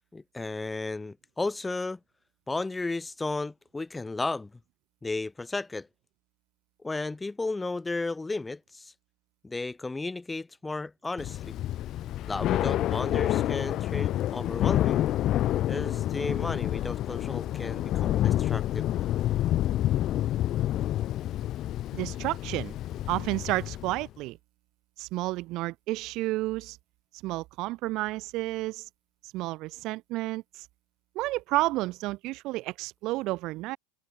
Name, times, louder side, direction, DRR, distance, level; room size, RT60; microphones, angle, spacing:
voice 1, 0.1-2.0 2.5-4.5 5.0-5.9 6.8-8.9 9.4-11.6 12.3-15.1 15.7-18.9, left 3 dB, 10° left, 4.8 m, -34 dB
Thunder / Rain, 11.2-24.1, left 13 dB, 45° left, 5.6 m, -28 dB
voice 2, 21.9-22.8 23.1-24.4 25.0-26.8 27.2-28.9 29.3-30.7 31.1-33.8, right 19 dB, 50° right, 2.5 m, -31 dB
open air
hypercardioid pair, 80°, 0 cm